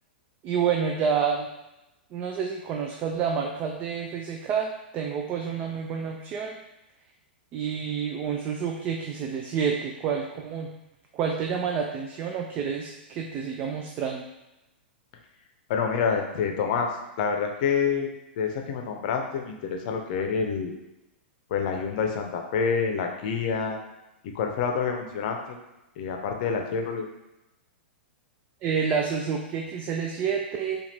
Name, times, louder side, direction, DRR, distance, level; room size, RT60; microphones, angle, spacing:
voice 1, 0.4-1.5 2.1-6.6 7.5-10.7 11.1-14.2 28.6-30.8, right 6 dB, 30° right, 2 dB, 0.4 m, -29 dB
voice 2, 15.7-18.1 18.4-20.7 21.5-23.8 24.2-25.6 26.0-27.1, left 6 dB, 50° left, 3 dB, 0.6 m, -27 dB
4.7 x 2.4 x 3.3 m, 0.96 s
figure-of-eight pair, 105°, 6 cm